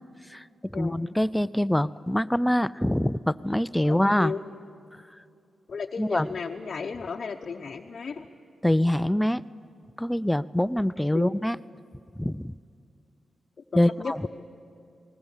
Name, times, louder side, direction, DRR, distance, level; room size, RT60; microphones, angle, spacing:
voice 1, 0.7-4.3 6.0-6.3 8.6-9.4 10.0-11.6 12.2-12.5 13.7-14.2, left 1 dB, 5° left, 17 dB, 0.4 m, -24 dB
voice 2, 3.8-4.4 5.7-8.3 11.1-11.4 13.7-14.3, left 5 dB, 55° left, 2 dB, 0.8 m, -34 dB
19.5 x 19.0 x 7.2 m, 2.6 s
cardioid pair, 70°, 0 cm